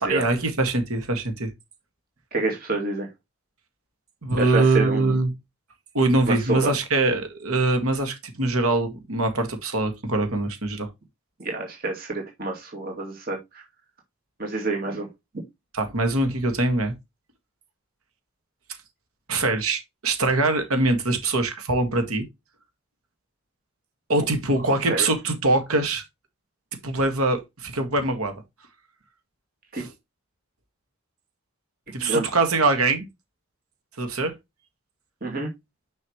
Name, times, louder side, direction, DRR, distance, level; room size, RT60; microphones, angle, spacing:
voice 1, 0.0-1.5 4.2-5.3 5.9-10.9 15.7-16.9 19.3-22.3 24.1-26.0 26.8-28.3 29.7-29.9 31.9-33.1 34.0-34.3, right 2 dB, 90° right, 1.7 m, -23 dB
voice 2, 2.3-3.1 4.4-5.1 6.3-6.7 11.4-13.4 14.4-15.1 24.2-24.3 24.9-25.1 29.7-29.8 32.0-32.3 35.2-35.5, right 2 dB, 40° right, 2.3 m, -27 dB
6.3 x 5.6 x 3.0 m
head